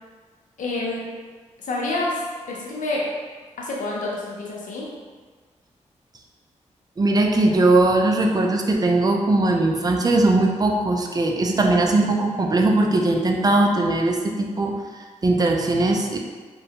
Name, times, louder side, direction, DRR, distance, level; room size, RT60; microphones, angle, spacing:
voice 1, 0.6-1.1 1.6-2.2 2.5-3.1 3.6-4.9, left 2 dB, 85° left, -4 dB, 0.6 m, -28 dB
voice 2, 7.0-16.2, right 2 dB, 30° right, 2 dB, 0.4 m, -20 dB
2.8 x 2.2 x 2.8 m, 1.5 s
cardioid pair, 65°, 13 cm